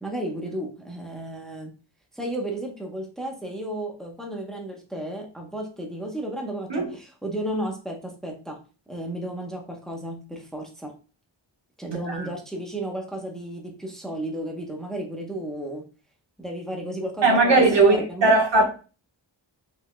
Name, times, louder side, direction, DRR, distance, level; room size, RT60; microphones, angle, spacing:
voice 1, 0.0-1.7 2.1-8.6 8.9-10.9 11.8-15.9 16.4-18.3, right 1 dB, ahead, 0.9 m, -33 dB
voice 2, 17.2-18.6, right 3 dB, 65° right, 1.4 m, -18 dB
5.4 x 3.9 x 2.2 m
wide cardioid pair, 90°, 46 cm